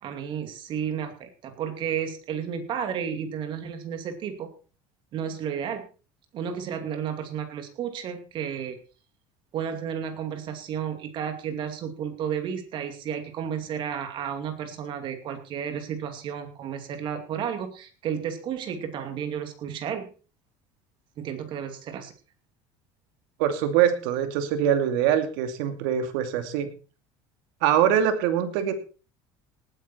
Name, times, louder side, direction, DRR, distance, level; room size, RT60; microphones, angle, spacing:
voice 1, 0.0-4.5 5.1-5.9 6.3-8.8 9.5-20.1 21.2-22.1, right 8 dB, 45° right, 7 dB, 2.6 m, -32 dB
voice 2, 23.4-26.7 27.6-28.7, right 9 dB, 80° right, 8 dB, 2.5 m, -23 dB
18.5 x 9.0 x 4.4 m, 0.36 s
cardioid pair, 150°, 12 cm